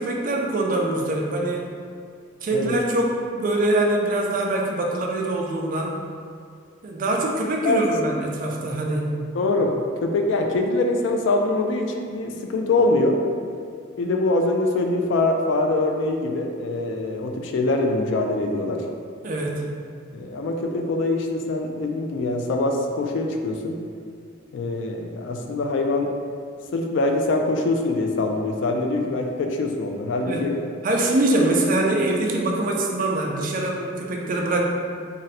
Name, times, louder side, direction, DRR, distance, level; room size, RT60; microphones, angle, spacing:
voice 1, 0.0-1.7 2.4-5.9 6.8-9.1 19.2-19.7 30.3-30.4 30.8-34.6, right 2 dB, 45° right, 0 dB, 0.4 m, -23 dB
voice 2, 9.3-13.2 14.0-18.9 20.1-23.8 24.5-26.1 26.7-30.7, left 2 dB, 65° left, 3 dB, 0.3 m, -23 dB
2.6 x 2.1 x 4.0 m, 2.2 s
head